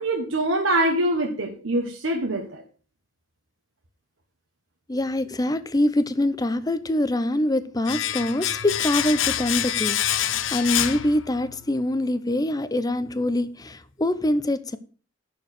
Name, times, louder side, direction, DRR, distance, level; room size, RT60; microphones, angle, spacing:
voice 1, 0.0-2.6, right 1 dB, 85° right, 1.3 m, -24 dB
voice 2, 4.9-14.8, left 1 dB, 20° left, 0.7 m, -24 dB
Domestic sounds home sounds, 7.9-11.7 11.9-12.1, left 11 dB, 75° left, 0.6 m, -26 dB
11.0 x 4.7 x 6.5 m
head